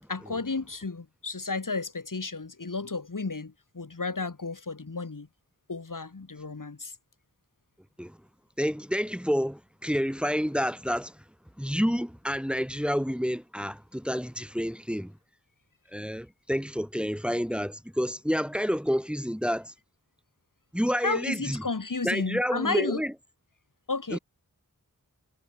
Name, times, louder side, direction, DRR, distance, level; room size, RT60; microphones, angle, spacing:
voice 1, 0.1-5.3 5.7-6.9 21.0-23.0 23.9-24.2, left 4 dB, 70° left, 3.1 m, -32 dB
voice 2, 8.6-11.2 11.6-15.1 15.9-19.7 20.7-21.6 22.0-23.1 24.1-24.2, equal, 5° right, 2.8 m, -29 dB
wide cardioid pair, 50°, 33 cm